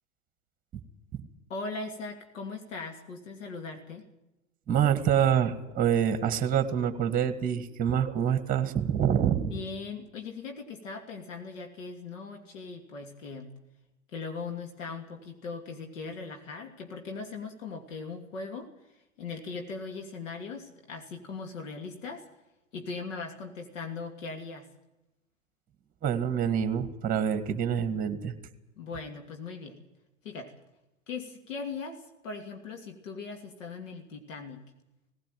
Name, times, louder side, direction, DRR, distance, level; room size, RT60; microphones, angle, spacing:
voice 1, 1.5-4.1 9.5-13.5 14.1-22.3 22.7-24.7 28.8-29.8 30.2-30.5 31.1-34.6, left 4 dB, 70° left, 4 dB, 2.8 m, -39 dB
voice 2, 4.7-9.5 26.0-28.3, right 8 dB, 20° right, 10 dB, 1.8 m, -26 dB
18.0 x 17.0 x 9.3 m, 0.97 s
hypercardioid pair, 105°, 39 cm